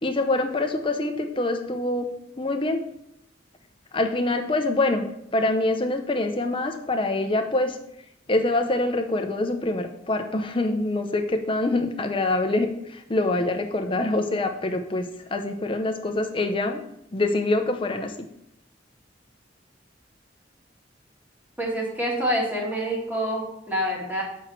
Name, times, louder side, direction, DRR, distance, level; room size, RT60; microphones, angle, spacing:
voice 1, 0.0-2.1 2.4-2.9 3.9-7.8 8.3-16.8 17.1-18.3, left 2 dB, 30° left, 5 dB, 0.8 m, -25 dB
voice 2, 21.6-24.2, equal, 10° right, -3 dB, 2.0 m, -27 dB
7.1 x 4.5 x 6.2 m, 0.80 s
head